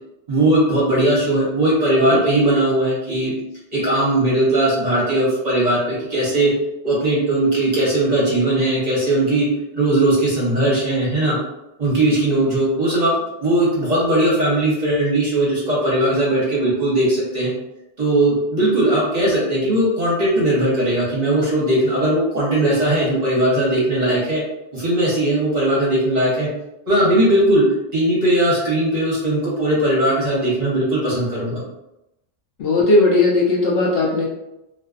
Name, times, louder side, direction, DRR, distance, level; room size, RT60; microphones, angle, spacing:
voice 1, 0.3-3.3 3.7-6.5 6.8-9.5 9.7-11.4 11.8-13.1 13.4-17.5 18.0-24.4 24.7-26.5 26.9-27.6 27.9-31.6, right 1 dB, 40° right, -6 dB, 0.7 m, -18 dB
voice 2, 32.6-34.2, left 2 dB, 65° left, -4 dB, 0.8 m, -16 dB
2.4 x 2.3 x 2.3 m, 0.90 s
omnidirectional pair, 1.2 m